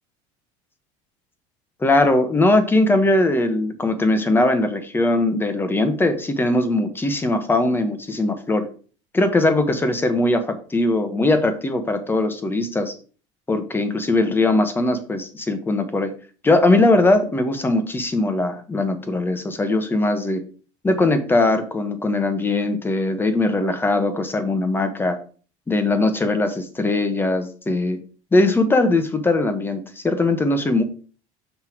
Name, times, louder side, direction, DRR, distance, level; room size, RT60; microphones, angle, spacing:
voice 1, 1.8-8.7 9.1-12.9 13.5-16.1 16.4-20.4 20.8-25.2 25.7-28.0 28.3-30.8, left 2 dB, 15° left, 8 dB, 1.1 m, -20 dB
5.9 x 5.7 x 4.5 m, 0.40 s
cardioid pair, 130°, 15 cm